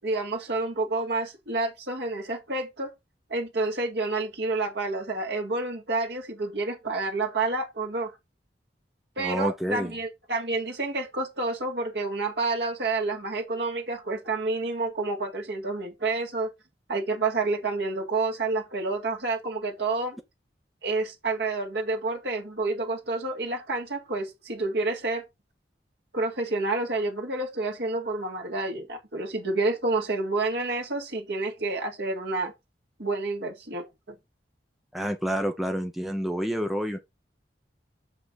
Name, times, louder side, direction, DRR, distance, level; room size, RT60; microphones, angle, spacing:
voice 1, 0.0-2.9 3.3-8.1 9.2-16.5 16.9-20.2 20.8-25.3 26.1-32.5 33.0-34.2, right 3 dB, 75° right, 2.0 m, -29 dB
voice 2, 9.2-9.9 34.9-37.0, equal, ahead, 0.8 m, -28 dB
6.9 x 5.6 x 4.1 m
head